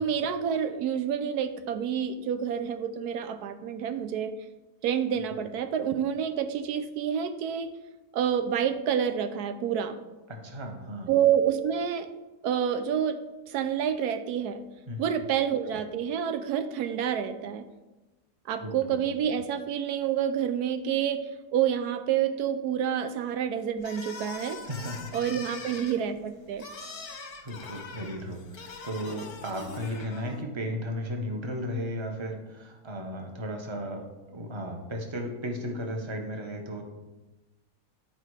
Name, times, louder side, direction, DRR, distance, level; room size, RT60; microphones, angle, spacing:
voice 1, 0.0-4.3 4.8-7.7 8.1-10.0 11.1-12.1 12.4-13.2 13.5-14.6 15.0-17.7 18.5-24.6 25.1-26.7, right 8 dB, 85° right, 10 dB, 1.2 m, -28 dB
voice 2, 10.3-11.1 14.9-15.0 18.6-19.0 24.7-25.1 25.4-25.5 26.9-27.0 27.4-36.8, equal, 20° right, 2 dB, 1.0 m, -35 dB
sound 1, 23.8-30.4, left 4 dB, 45° left, 0.9 m, -42 dB
10.5 x 5.1 x 4.8 m, 1.1 s
omnidirectional pair, 1.6 m